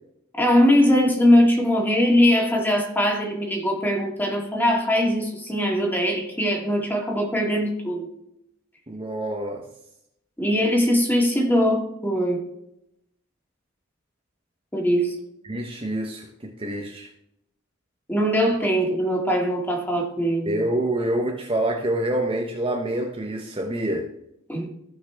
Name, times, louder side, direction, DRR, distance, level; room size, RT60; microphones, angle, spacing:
voice 1, 0.3-8.1 10.4-12.4 14.7-15.2 18.1-20.7 24.5-24.7, equal, 10° left, 0 dB, 2.2 m, -21 dB
voice 2, 8.9-9.7 15.5-17.1 20.5-24.1, right 1 dB, 25° right, 1 dB, 0.9 m, -26 dB
15.5 x 5.7 x 3.4 m, 0.80 s
head